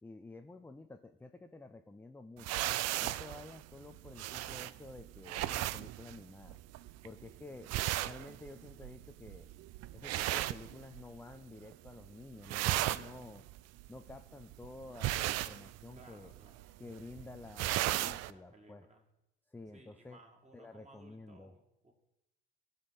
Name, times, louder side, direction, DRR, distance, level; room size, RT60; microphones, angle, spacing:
voice 1, 0.0-2.7 3.0-6.6 7.0-7.7 8.0-9.5 9.9-13.4 13.9-16.3 16.8-18.9 19.5-20.2 20.5-21.6, left 2 dB, 5° left, 7 dB, 0.4 m, -51 dB
sound 1, 2.4-11.4 11.6-12.1 12.3-18.3, right 15 dB, 50° right, 0.4 m, -37 dB
voice 2, 16.0-16.7 18.3-19.0 19.7-21.9, right 2 dB, 20° right, 2 dB, 2.2 m, -60 dB
15.0 x 5.2 x 4.1 m, 0.87 s
hypercardioid pair, 65°, 33 cm